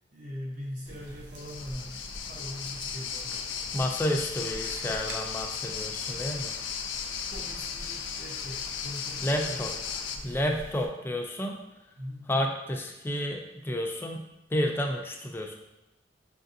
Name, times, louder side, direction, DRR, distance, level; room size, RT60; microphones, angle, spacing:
voice 1, 0.1-3.4 7.3-9.7 10.1-10.6 12.0-12.3, equal, 50° right, -4 dB, 0.8 m, -41 dB
sound 1, 0.9-10.9, right 1 dB, 85° right, 0.6 m, -46 dB
sound 2, 1.4-10.2, left 7 dB, 90° left, 0.4 m, -36 dB
voice 2, 3.7-6.5 9.2-9.7 10.2-11.6 12.3-14.2 14.5-15.6, equal, 15° left, 1 dB, 0.4 m, -30 dB
5.7 x 2.4 x 2.6 m, 0.93 s
head